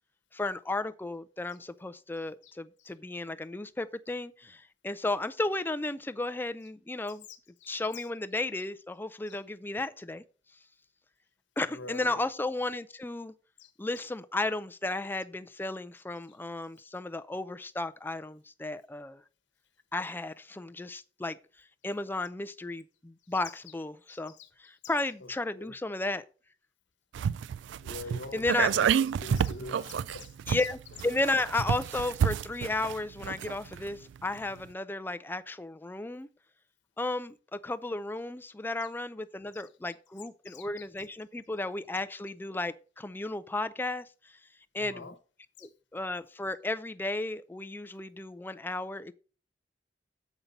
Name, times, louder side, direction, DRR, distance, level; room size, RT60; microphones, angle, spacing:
voice 1, 0.3-7.3 7.7-10.2 11.6-13.3 13.8-19.2 19.9-21.4 21.8-24.3 24.6-26.2 28.3-28.7 30.5-36.3 37.0-44.4 44.7-45.1 45.6-49.1, left 2 dB, 10° left, 0.4 m, -34 dB
voice 2, 7.6-8.1 9.3-9.4 11.7-12.2 13.6-13.7 14.0-14.1 16.3-16.4 23.5-23.6 24.1-24.5 25.2-25.7 27.8-30.7 38.8-38.9 39.5-39.6 40.4-40.9 44.8-45.2 45.6-45.7, left 3 dB, 75° left, 1.1 m, -46 dB
sound 1, 27.1-33.9 34.2-34.3, right 8 dB, 75° right, 0.3 m, -29 dB
7.2 x 5.5 x 5.2 m
head